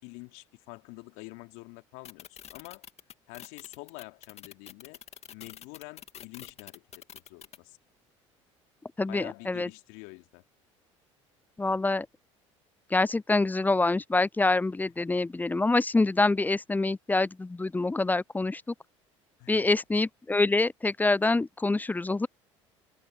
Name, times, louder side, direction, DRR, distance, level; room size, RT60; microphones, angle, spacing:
voice 1, 0.0-2.9 3.3-5.0 5.3-7.8 9.1-10.4 19.4-19.7, left 29 dB, 65° left, 3.0 m, -47 dB
sound 1, 2.0-7.6, left 9 dB, 40° left, 2.2 m, -46 dB
voice 2, 9.0-9.7 11.6-12.1 12.9-18.7 19.5-22.3, left 2 dB, 10° left, 0.5 m, -26 dB
hypercardioid pair, 65°, 16 cm